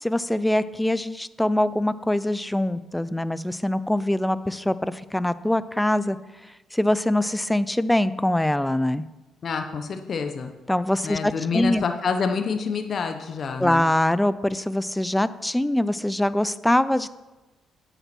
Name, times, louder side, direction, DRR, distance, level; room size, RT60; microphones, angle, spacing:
voice 1, 0.0-6.2 6.7-9.0 10.7-11.8 13.6-17.1, left 1 dB, 5° left, 16 dB, 0.4 m, -23 dB
voice 2, 9.4-10.5 11.0-13.9, left 5 dB, 50° left, 6 dB, 0.8 m, -27 dB
8.6 x 6.8 x 6.0 m, 1.1 s
cardioid pair, 90°, 0 cm